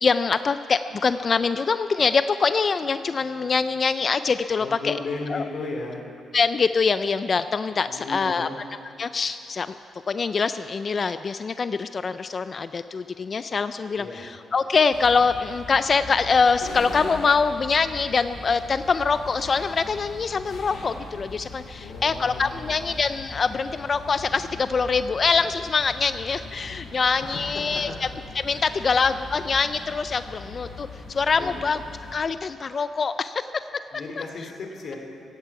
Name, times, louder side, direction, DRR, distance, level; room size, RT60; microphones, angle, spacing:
voice 1, 0.0-5.0 5.3-5.4 6.3-8.5 9.0-9.8 10.1-28.1 28.4-31.8 32.1-33.5 34.2-34.3, left 5 dB, 40° left, 12 dB, 0.4 m, -24 dB
voice 2, 4.6-6.0 7.9-8.6 14.0-14.3 21.8-22.8 27.2-28.0 28.5-29.0 31.4-31.6 33.9-35.0, left 3 dB, 60° left, 1 dB, 2.8 m, -35 dB
sound 1, 14.9-32.1, left 3 dB, 85° left, 2.9 m, -41 dB
16.5 x 15.5 x 4.8 m, 2.8 s
cardioid pair, 100°, 0 cm